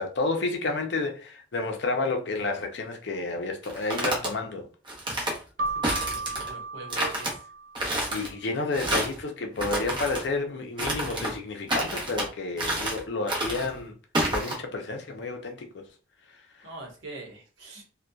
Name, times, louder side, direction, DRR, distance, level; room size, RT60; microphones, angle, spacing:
voice 1, 0.0-4.7 8.1-13.9 14.3-15.8, left 3 dB, 65° left, 0.5 m, -30 dB
sound 1, 3.6-4.3 4.9-5.4 5.8-6.5 6.9-7.3 7.7-8.3 8.7-9.2 9.6-10.2 10.8-11.3 11.7-12.3 12.6-13.0 13.3-13.7 14.1-14.5, right 1 dB, 25° right, 0.7 m, -29 dB
Keyboard (musical), 5.6-8.1, right 3 dB, 45° right, 0.3 m, -34 dB
voice 2, 5.6-7.4 16.6-17.8, right 2 dB, 75° right, 0.9 m, -43 dB
2.6 x 2.2 x 2.2 m
head